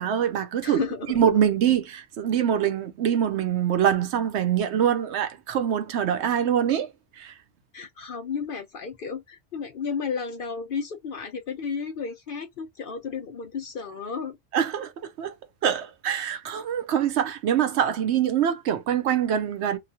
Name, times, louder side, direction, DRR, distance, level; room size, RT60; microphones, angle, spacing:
voice 1, 0.0-7.4 14.5-14.9 15.2-15.3 15.6-19.8, right 9 dB, 70° right, 0.8 m, -24 dB
voice 2, 0.6-1.2 7.7-14.4, left 5 dB, 55° left, 0.7 m, -33 dB
3.0 x 2.2 x 2.7 m
omnidirectional pair, 1.3 m